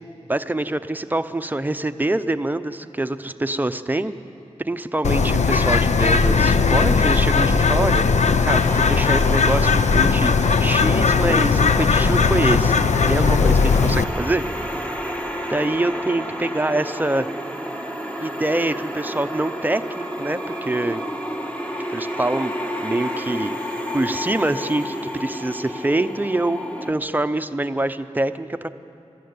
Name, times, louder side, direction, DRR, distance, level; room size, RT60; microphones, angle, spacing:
voice 1, 0.3-4.1 4.6-8.0 8.4-12.7 13.1-14.4 14.8-14.9 15.5-17.3 18.2-21.0 21.9-22.5 22.8-23.6 23.9-28.7, right 2 dB, 15° right, 9 dB, 0.7 m, -25 dB
Bird, 5.0-14.0, left 5 dB, 75° left, 0.7 m, -18 dB
sound 1, 8.5-26.9, equal, 10° left, 1.4 m, -31 dB
23.5 x 14.0 x 9.6 m, 2.7 s
wide cardioid pair, 100°, 12 cm